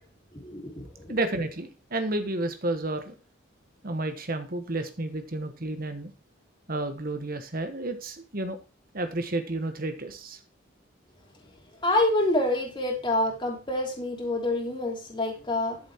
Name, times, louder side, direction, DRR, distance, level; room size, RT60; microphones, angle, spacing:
voice 1, 0.4-1.1 11.8-15.8, left 2 dB, 20° left, 3.1 m, -27 dB
voice 2, 1.1-3.1 3.8-6.1 6.7-8.6 8.9-10.4, right 2 dB, 45° right, 1.3 m, -31 dB
12.0 x 7.3 x 4.5 m
head